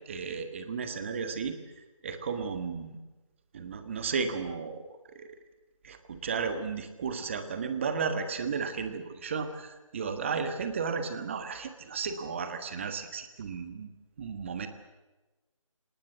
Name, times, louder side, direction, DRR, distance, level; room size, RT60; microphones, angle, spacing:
voice 1, 0.1-1.5 2.0-3.0 3.5-4.8 5.1-5.3 5.8-13.9 14.2-14.7, right 5 dB, 20° right, 8 dB, 1.5 m, -34 dB
25.0 x 19.5 x 8.0 m, 1.1 s
figure-of-eight pair, 165°, 17 cm